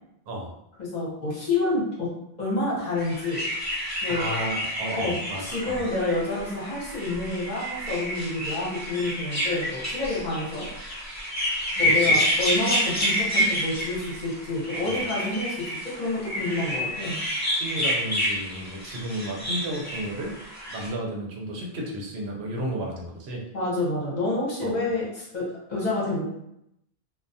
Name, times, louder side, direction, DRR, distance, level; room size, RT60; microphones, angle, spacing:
voice 1, 0.8-2.1 2.4-3.5 4.0-4.2 5.0-10.7 11.8-17.2 23.5-26.2, left 2 dB, 45° left, -6 dB, 0.9 m, -28 dB
sound 1, 3.0-20.9, equal, 15° left, 1.0 m, -29 dB
voice 2, 4.1-5.8 11.8-12.2 14.8-15.0 17.5-20.3 20.7-23.4 24.6-24.8, right 1 dB, 85° right, 0 dB, 0.9 m, -33 dB
2.3 x 2.2 x 2.6 m, 0.79 s
omnidirectional pair, 1.0 m